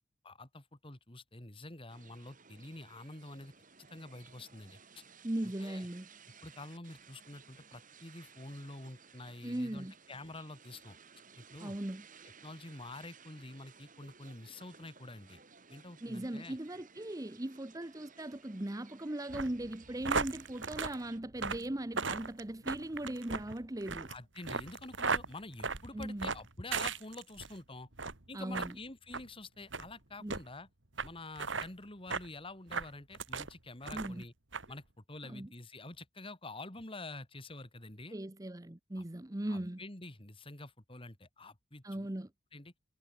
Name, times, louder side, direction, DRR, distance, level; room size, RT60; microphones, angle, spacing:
voice 1, 0.2-3.5 3.8-5.0 5.4-5.9 6.4-11.0 11.4-11.7 12.4-15.4 15.7-16.6 24.1-27.9 28.3-30.7 31.0-34.3 34.7-38.2 39.0-39.1 39.5-42.1 42.5-42.7, left 2 dB, 25° left, 2.6 m, -48 dB
sound 1, 1.9-21.2, right 6 dB, 40° right, 7.7 m, -58 dB
voice 2, 5.2-6.1 9.4-9.9 11.6-12.0 16.0-24.1 25.9-26.3 28.3-28.7 30.2-30.3 33.9-34.2 35.2-35.5 38.1-39.8 41.8-42.3, right 1 dB, 15° right, 0.8 m, -39 dB
sound 2, 19.3-27.5 27.9-28.2 28.5-28.7 29.1-29.3 29.7-29.9 30.3-30.4 31.0-31.1 31.4-31.7 32.1-32.3 32.7-33.5 33.8-34.2 34.5-34.7, right 4 dB, 65° right, 2.7 m, -36 dB
head